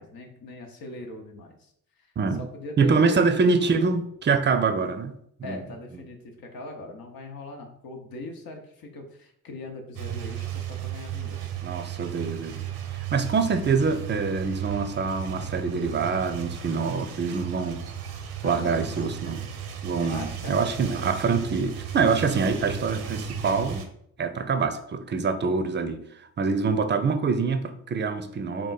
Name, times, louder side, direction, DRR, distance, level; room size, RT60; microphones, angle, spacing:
voice 1, 0.0-1.7 2.0-2.1 2.4-3.2 3.6-4.0 5.4-11.5 18.4-19.1 20.0-21.1, left 2 dB, 65° left, 2 dB, 0.8 m, -41 dB
voice 2, 2.8-5.1 5.4-5.6 11.6-12.6 13.1-17.8 18.4-19.4 19.8-23.8 24.2-26.0 26.4-28.7, right 4 dB, 30° right, 9 dB, 0.5 m, -25 dB
sound 1, 9.9-23.8, right 8 dB, 80° right, 0.7 m, -35 dB
3.6 x 2.4 x 3.9 m, 0.71 s
supercardioid pair, 60°, 38 cm